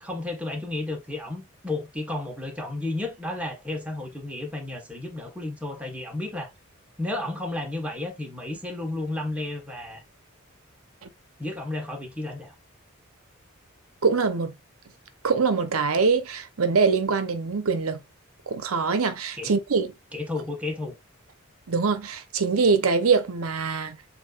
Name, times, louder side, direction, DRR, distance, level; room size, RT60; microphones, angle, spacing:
voice 1, 0.0-6.5 7.0-10.0 11.4-12.5 19.4-19.5 20.1-20.9, left 2 dB, 5° right, 1.3 m, -32 dB
voice 2, 14.0-14.5 15.2-18.0 18.5-19.9 21.7-24.0, right 5 dB, 85° right, 0.8 m, -23 dB
7.4 x 2.8 x 2.4 m
head